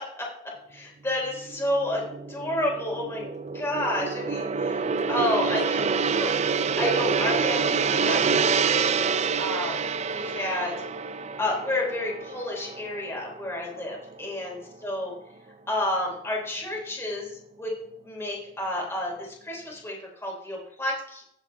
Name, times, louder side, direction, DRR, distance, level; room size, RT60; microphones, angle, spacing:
voice 1, 0.7-2.0 2.3-3.2 3.5-6.3 6.7-9.8 10.1-10.7 11.4-15.1 15.7-17.3 17.6-17.7 18.0-21.2, left 1 dB, 15° left, -3 dB, 3.4 m, -30 dB
Gong, 1.3-13.8 14.1-14.4, right 5 dB, 35° right, 0.4 m, -27 dB
16.5 x 7.2 x 3.4 m, 0.74 s
head